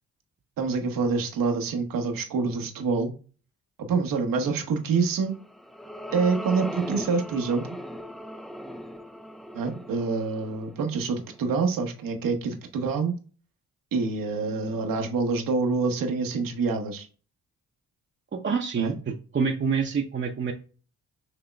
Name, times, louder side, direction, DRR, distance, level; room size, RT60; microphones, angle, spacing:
voice 1, 0.6-3.1 3.9-5.4 6.1-7.7 9.5-13.1 13.9-17.1 18.8-18.9, right 4 dB, 75° right, 0.9 m, -26 dB
sound 1, 5.2-11.7, equal, ahead, 0.3 m, -39 dB
voice 2, 18.3-20.5, right 5 dB, 35° right, 0.6 m, -27 dB
6.1 x 2.9 x 2.2 m
supercardioid pair, 55°, 34 cm